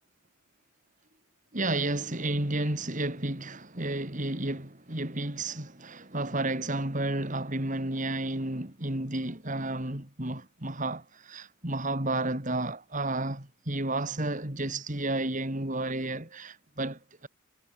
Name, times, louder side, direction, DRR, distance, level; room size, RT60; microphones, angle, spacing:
voice 1, 1.5-17.3, right 2 dB, 35° right, 3.1 m, -32 dB
head